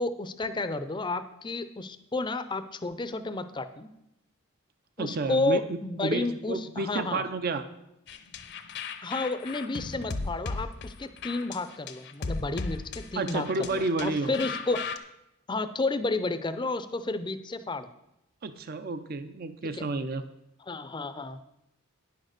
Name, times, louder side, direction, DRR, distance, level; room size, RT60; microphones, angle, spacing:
voice 1, 0.0-3.9 5.0-7.2 9.0-14.8 15.5-17.9 19.7-19.8 20.6-21.4, left 2 dB, 20° left, 11 dB, 0.5 m, -31 dB
voice 2, 5.0-5.6 6.0-7.6 13.2-14.3 18.4-20.2, right 3 dB, 45° right, 11 dB, 0.5 m, -30 dB
sound 1, 8.1-15.0, left 4 dB, 55° left, 0.7 m, -36 dB
9.6 x 6.6 x 6.5 m, 0.84 s
head